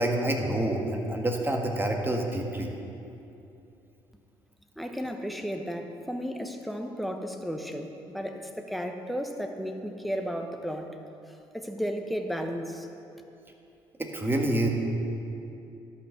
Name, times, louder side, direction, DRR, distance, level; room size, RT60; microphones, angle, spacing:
voice 1, 0.0-2.7 14.0-14.7, right 1 dB, 20° right, 2 dB, 1.7 m, -27 dB
voice 2, 4.8-10.9 11.5-12.9, equal, ahead, 4 dB, 1.1 m, -34 dB
12.0 x 5.8 x 6.5 m, 2.8 s
hypercardioid pair, 55°, 11 cm